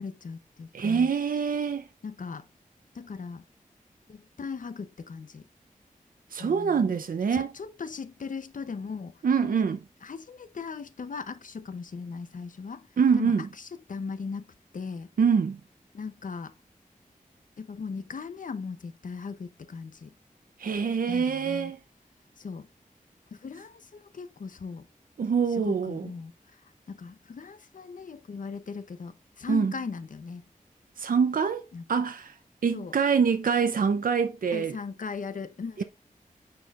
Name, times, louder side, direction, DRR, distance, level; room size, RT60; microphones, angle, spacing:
voice 1, 0.0-1.1 2.0-2.5 2.9-3.4 4.1-5.5 6.4-6.9 7.3-9.5 10.0-12.9 13.2-15.1 15.9-16.5 17.6-20.1 21.1-21.7 22.4-22.7 23.3-24.9 25.5-26.3 26.9-30.4 31.7-31.8 32.7-32.9 34.5-35.8, left 5 dB, 65° left, 0.7 m, -38 dB
voice 2, 0.7-1.8 6.3-7.5 9.2-9.8 13.0-13.5 15.2-15.6 20.6-21.8 25.2-26.1 29.5-29.7 31.0-31.6 31.9-32.3 32.6-34.8 35.8-35.9, right 6 dB, 75° right, 0.6 m, -25 dB
9.5 x 4.4 x 2.4 m
wide cardioid pair, 95°, 14 cm